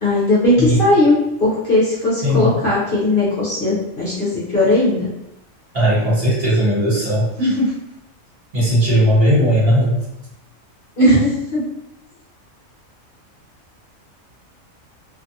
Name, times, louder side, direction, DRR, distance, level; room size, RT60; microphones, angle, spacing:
voice 1, 0.0-5.1 7.4-7.7 11.0-11.6, left 1 dB, 50° left, -8 dB, 0.8 m, -17 dB
voice 2, 2.2-2.6 5.7-7.5 8.5-10.0, equal, 45° right, -8 dB, 1.2 m, -17 dB
2.6 x 2.4 x 2.6 m, 0.85 s
omnidirectional pair, 1.4 m